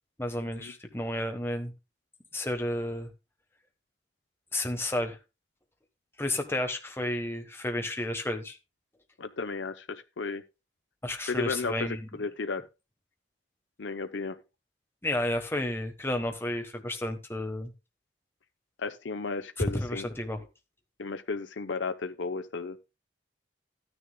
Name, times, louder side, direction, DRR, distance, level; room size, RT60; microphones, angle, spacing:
voice 1, 0.2-1.7 2.3-3.1 4.5-5.2 6.2-8.6 11.0-12.1 15.0-17.7 19.7-20.5, left 1 dB, 15° left, 1.3 m, -32 dB
voice 2, 9.2-10.4 11.3-12.6 13.8-14.4 18.8-20.1 21.0-22.8, left 4 dB, 85° left, 0.7 m, -34 dB
13.5 x 9.8 x 2.3 m
head